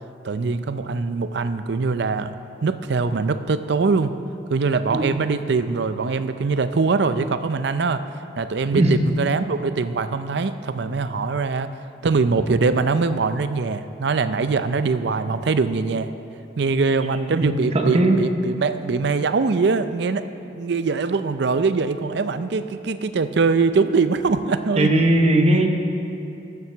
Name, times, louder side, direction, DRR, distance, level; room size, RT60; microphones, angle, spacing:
voice 1, 0.2-2.3 2.6-4.1 4.5-8.0 8.4-11.7 12.0-16.1 16.6-20.3 20.5-24.9, right 4 dB, 60° right, 11 dB, 0.5 m, -22 dB
voice 2, 17.4-18.2 24.8-25.7, right 1 dB, 35° right, 4 dB, 0.9 m, -18 dB
12.5 x 7.3 x 6.8 m, 2.8 s
head